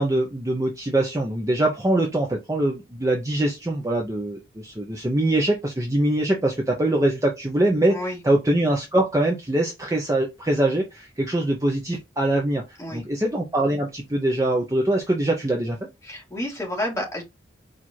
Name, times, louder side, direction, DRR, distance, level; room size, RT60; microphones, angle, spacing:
voice 1, 0.0-8.0 8.2-12.6 12.9-15.8, right 1 dB, 15° right, 0.6 m, -23 dB
voice 2, 7.9-8.2 12.8-13.0 16.0-17.2, left 1 dB, 15° left, 2.0 m, -30 dB
4.5 x 2.5 x 4.2 m
head